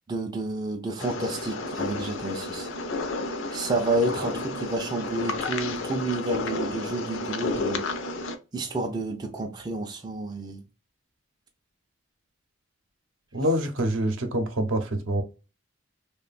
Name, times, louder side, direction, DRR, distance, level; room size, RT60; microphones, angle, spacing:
voice 1, 0.1-2.7 3.5-7.9 8.5-10.6, right 2 dB, 20° right, 0.3 m, -30 dB
sound 1, 1.0-8.4, left 3 dB, 70° left, 0.4 m, -31 dB
voice 2, 13.3-15.2, right 1 dB, 70° right, 0.6 m, -26 dB
3.1 x 2.1 x 2.4 m
head